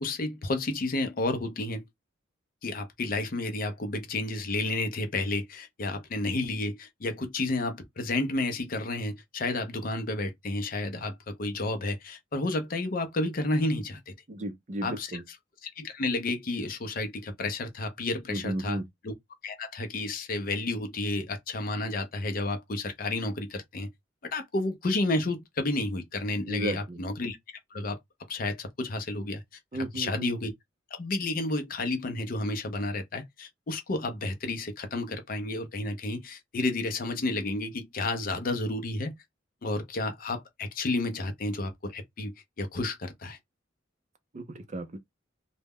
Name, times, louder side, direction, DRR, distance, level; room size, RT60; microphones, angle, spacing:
voice 1, 0.0-1.8 2.6-14.1 14.8-15.1 15.6-19.1 19.4-23.9 24.3-27.4 27.7-28.0 28.3-29.4 29.7-30.5 30.9-39.1 39.6-43.4, left 2 dB, 45° left, 0.5 m, -31 dB
voice 2, 14.3-15.2 18.3-18.8 26.4-27.0 29.7-30.3 44.3-45.0, right 1 dB, 35° right, 0.5 m, -34 dB
2.2 x 2.0 x 3.4 m
head